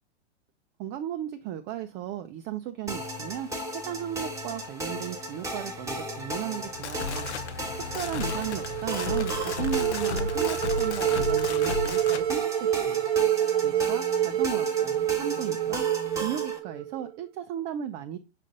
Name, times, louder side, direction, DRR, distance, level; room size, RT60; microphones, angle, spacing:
voice 1, 0.8-3.5 3.7-7.3 7.8-13.1 13.6-15.8 16.2-18.2, right 10 dB, 30° right, 7 dB, 0.5 m, -35 dB
sound 1, 2.9-16.6, equal, 10° right, 1.4 m, -36 dB
sound 2, 6.6-12.3, left 5 dB, 80° left, 0.8 m, -34 dB
sound 3, 7.9-17.1, right 11 dB, 70° right, 0.9 m, -27 dB
6.5 x 3.9 x 3.7 m, 0.26 s
hypercardioid pair, 115°, 33 cm